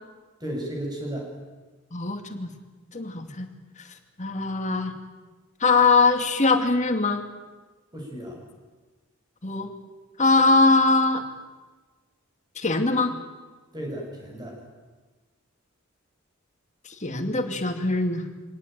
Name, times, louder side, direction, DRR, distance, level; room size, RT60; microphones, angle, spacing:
voice 1, 0.4-1.3 7.9-8.4 13.7-14.6, right 1 dB, 20° right, 0 dB, 7.1 m, -34 dB
voice 2, 1.9-2.5 2.9-3.5 4.2-4.9 5.6-7.2 9.4-9.7 10.2-11.2 12.6-13.1 16.8-18.2, left 3 dB, 35° left, 6 dB, 2.5 m, -22 dB
25.5 x 18.5 x 9.2 m, 1.3 s
head